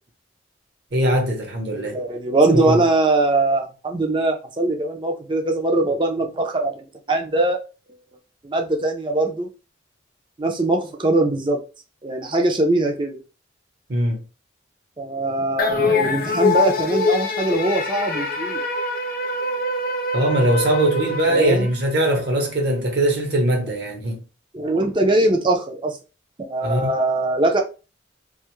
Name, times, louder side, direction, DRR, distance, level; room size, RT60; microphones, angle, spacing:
voice 1, 0.9-2.0 2.5-2.8 13.9-14.2 20.1-24.2 26.6-26.9, right 1 dB, 60° right, 0.9 m, -21 dB
voice 2, 1.7-7.6 8.4-9.5 10.4-11.6 12.0-13.2 15.0-18.6 21.3-21.7 24.5-26.0 26.4-27.6, right 2 dB, 25° right, 0.5 m, -21 dB
sound 1, 15.6-22.1, left 3 dB, 50° left, 0.5 m, -24 dB
2.5 x 2.3 x 3.0 m
head